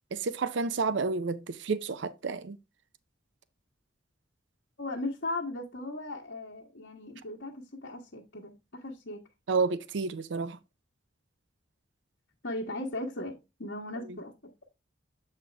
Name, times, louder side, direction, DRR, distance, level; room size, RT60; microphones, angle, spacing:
voice 1, 0.1-2.6 9.5-10.6 14.1-14.2, right 4 dB, 75° right, 0.5 m, -30 dB
voice 2, 4.8-9.2 12.4-14.7, left 2 dB, 70° left, 1.3 m, -37 dB
7.5 x 4.4 x 3.4 m
head